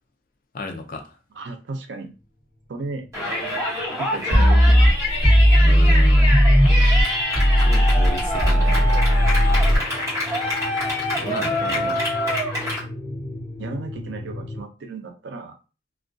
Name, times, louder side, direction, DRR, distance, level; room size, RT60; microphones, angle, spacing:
voice 1, 0.5-1.0 5.6-6.3 7.6-8.9 11.1-11.9, left 3 dB, 50° left, 0.4 m, -33 dB
voice 2, 1.3-2.1 2.7-3.1 4.0-4.9 11.6-12.0 13.6-15.6, right 3 dB, 85° right, 0.5 m, -34 dB
sound 1, 2.6-14.6, left 1 dB, 80° left, 1.1 m, -37 dB
Yell, 3.1-12.8, left 1 dB, 15° right, 1.0 m, -26 dB
sound 2, 4.3-7.0 7.3-9.8, equal, ahead, 1.3 m, -16 dB
2.2 x 2.2 x 2.5 m
head